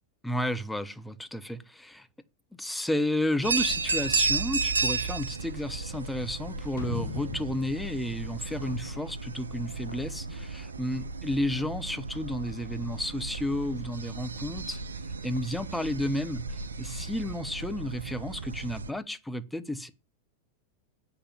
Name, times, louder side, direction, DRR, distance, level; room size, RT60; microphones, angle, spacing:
voice 1, 0.2-2.1 2.6-14.8 15.2-19.9, left 1 dB, 5° left, 0.9 m, -32 dB
sound 1, 3.4-18.9, right 4 dB, 75° right, 0.6 m, -34 dB
sound 2, 6.8-9.6 9.9-10.0, left 4 dB, 60° left, 2.1 m, -39 dB
sound 3, 8.5-10.2 11.6-11.7 13.3-13.4 15.4-15.5 16.8-17.0, left 1 dB, 80° left, 2.0 m, -47 dB
8.4 x 5.9 x 7.3 m
figure-of-eight pair, 90°, 0 cm